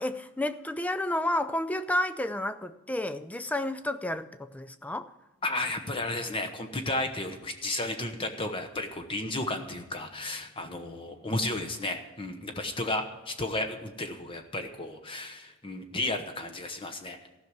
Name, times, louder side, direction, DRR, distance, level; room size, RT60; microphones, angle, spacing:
voice 1, 0.0-5.1, left 1 dB, 5° left, 11 dB, 0.4 m, -31 dB
voice 2, 5.4-17.2, left 2 dB, 25° left, 6 dB, 1.0 m, -33 dB
15.0 x 6.1 x 8.1 m, 1.1 s
head